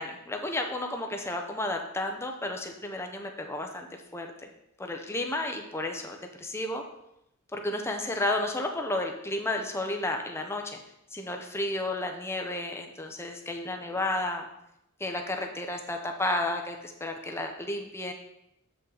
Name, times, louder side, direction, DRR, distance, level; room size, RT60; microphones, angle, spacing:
voice 1, 0.0-3.9 4.1-4.5 4.8-6.8 7.5-10.8 11.1-14.5 15.0-18.1, left 1 dB, 10° left, 3 dB, 0.7 m, -32 dB
7.5 x 5.5 x 3.9 m, 0.84 s
head